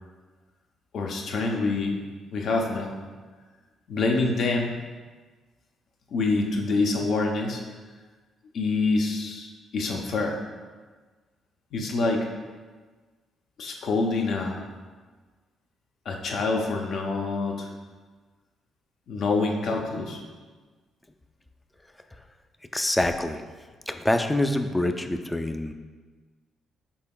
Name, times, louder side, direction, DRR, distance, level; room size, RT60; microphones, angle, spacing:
voice 1, 0.9-2.0 2.3-3.0 3.9-4.8 6.1-7.6 8.5-10.4 11.7-12.3 13.6-14.6 16.1-17.7 19.1-20.2, left 3 dB, 65° left, 1 dB, 0.6 m, -26 dB
voice 2, 22.7-23.4 23.9-25.7, left 1 dB, 10° left, 7 dB, 0.3 m, -25 dB
5.5 x 3.9 x 2.3 m, 1.4 s
cardioid pair, 90°, 0 cm